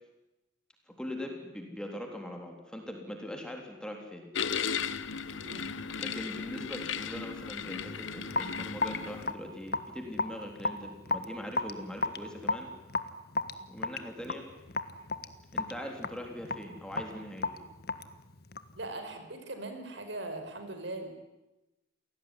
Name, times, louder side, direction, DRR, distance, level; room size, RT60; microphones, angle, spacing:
voice 1, 1.0-4.3 6.0-12.7 13.7-14.5 15.5-17.5, left 1 dB, 5° left, 2 dB, 3.6 m, -41 dB
sound 1, 4.3-9.3, left 6 dB, 90° left, 1.1 m, -36 dB
Raindrop / Drip, 8.3-18.8, left 3 dB, 50° left, 1.4 m, -35 dB
voice 2, 18.8-21.1, right 2 dB, 70° right, 7 dB, 4.9 m, -40 dB
28.5 x 18.0 x 10.0 m, 0.99 s
head